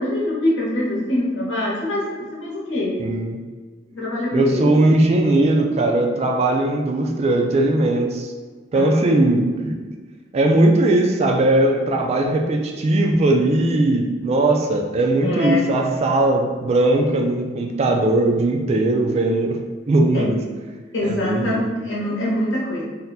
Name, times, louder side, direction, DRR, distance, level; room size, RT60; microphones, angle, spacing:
voice 1, 0.0-3.0 3.9-4.7 8.7-9.1 15.2-15.7 20.1-20.3 20.9-22.8, left 1 dB, 70° left, -5 dB, 1.0 m, -24 dB
voice 2, 3.0-3.4 4.3-8.3 8.7-9.8 10.3-19.6 19.9-20.4 21.0-21.6, right 2 dB, 35° right, 2 dB, 0.3 m, -19 dB
2.6 x 2.2 x 4.0 m, 1.4 s
head